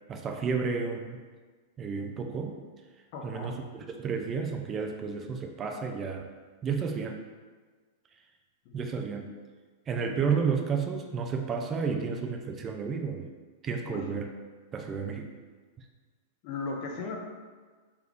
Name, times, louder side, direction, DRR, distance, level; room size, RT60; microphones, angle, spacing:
voice 1, 0.1-1.2 1.8-2.6 3.2-6.3 6.6-7.2 8.7-9.3 9.9-13.3 13.6-14.3 14.7-15.3, right 5 dB, 25° right, 4 dB, 0.3 m, -31 dB
voice 2, 3.1-3.5 8.7-8.8 13.8-14.1 16.4-17.2, left 4 dB, 50° left, 1 dB, 0.6 m, -37 dB
3.4 x 2.2 x 3.5 m, 1.4 s
hypercardioid pair, 125°, 0 cm